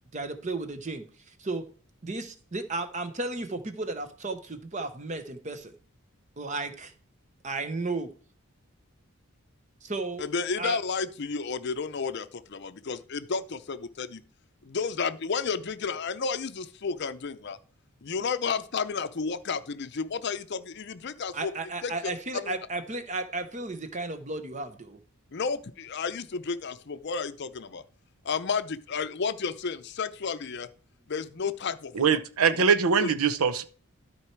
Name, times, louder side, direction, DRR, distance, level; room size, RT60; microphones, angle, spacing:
voice 1, 0.1-1.6 2.0-5.7 6.4-6.9 7.4-8.1 9.8-10.2 10.6-10.8 21.3-25.0, right 2 dB, 35° right, 0.9 m, -34 dB
voice 2, 10.2-14.2 14.6-17.6 18.0-21.5 21.8-21.9 22.3-22.5 25.3-27.8 28.2-30.7 31.1-32.2 32.5-32.6 33.0-33.1, left 5 dB, 50° left, 0.6 m, -32 dB
voice 3, 32.0-33.6, right 6 dB, 80° right, 0.7 m, -23 dB
13.0 x 4.5 x 4.5 m
head